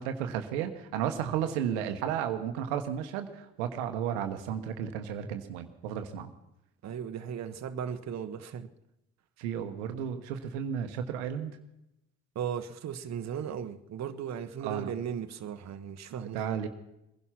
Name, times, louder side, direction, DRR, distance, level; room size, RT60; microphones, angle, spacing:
voice 1, 0.0-6.3 9.4-11.6 14.6-14.9 16.2-16.7, right 9 dB, 85° right, 1.2 m, -33 dB
voice 2, 6.8-8.7 12.3-16.5, right 8 dB, 50° right, 1.1 m, -36 dB
21.0 x 11.0 x 5.9 m
hypercardioid pair, 55°, 34 cm